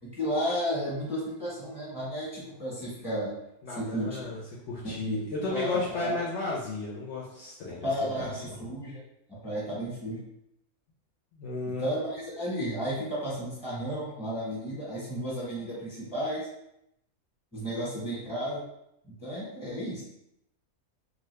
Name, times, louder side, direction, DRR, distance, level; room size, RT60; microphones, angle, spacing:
voice 1, 0.0-3.3 3.7-4.3 4.8-6.2 7.8-9.0 9.4-10.2 11.8-16.5 17.5-18.6 19.0-20.0, equal, 5° right, -7 dB, 0.9 m, -33 dB
voice 2, 3.6-4.4 4.7-8.4 11.3-11.9, left 3 dB, 65° left, -4 dB, 0.8 m, -34 dB
2.8 x 2.5 x 3.2 m, 0.80 s
omnidirectional pair, 1.6 m